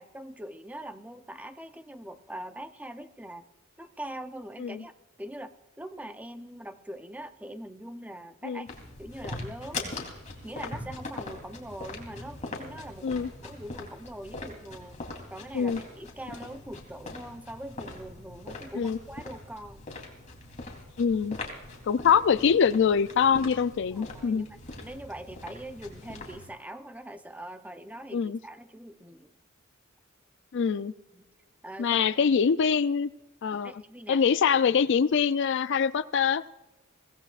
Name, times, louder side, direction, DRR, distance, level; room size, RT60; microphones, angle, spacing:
voice 1, 0.0-3.5 3.8-4.9 5.2-8.7 9.0-9.9 10.4-15.0 15.3-19.8 23.9-29.3 31.1-31.3 31.6-32.0 33.5-34.2, right 1 dB, 5° right, 8 dB, 0.7 m, -42 dB
sound 1, 8.7-26.5, left 2 dB, 35° left, 3.3 m, -42 dB
voice 2, 21.0-21.4 21.8-24.5 28.1-28.4 30.5-30.9 31.8-33.1 33.4-33.7 34.1-36.4, left 6 dB, 60° left, 15 dB, 0.4 m, -24 dB
23.5 x 17.5 x 2.5 m, 1.1 s
head